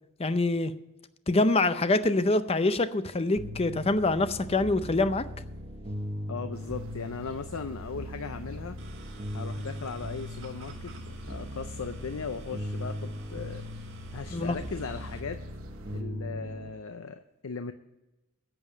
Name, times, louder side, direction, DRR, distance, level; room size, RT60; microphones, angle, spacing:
voice 1, 0.2-0.7 1.3-5.3 14.3-14.6, left 2 dB, 30° left, 0.6 m, -25 dB
sound 1, 3.4-16.7, equal, 35° right, 1.2 m, -39 dB
voice 2, 6.3-8.8 9.3-13.7 14.1-15.4 15.9-17.7, left 5 dB, 85° left, 0.6 m, -38 dB
sound 2, 6.5-16.0, right 1 dB, 80° right, 1.2 m, -52 dB
sound 3, 8.8-15.2, right 2 dB, 60° right, 1.7 m, -50 dB
11.0 x 7.0 x 8.2 m
head